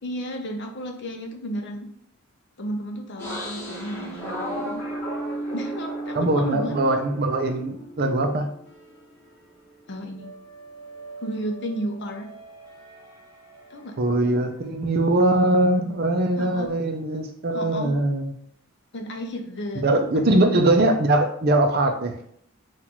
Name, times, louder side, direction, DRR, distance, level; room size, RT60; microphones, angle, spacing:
voice 1, 0.0-1.9 2.6-4.8 5.5-6.8 9.9-10.3 11.2-12.3 13.7-13.9 16.4-16.7 17.5-17.9 18.9-19.8 20.3-20.4, equal, 55° left, 4 dB, 0.6 m, -33 dB
sound 1, 3.2-9.2 9.6-13.8 14.1-16.7, right 1 dB, 10° left, 1.3 m, -36 dB
voice 2, 6.1-8.5 14.0-18.3 19.8-22.2, right 1 dB, 45° right, 5 dB, 0.5 m, -21 dB
5.7 x 2.5 x 3.0 m, 0.67 s
head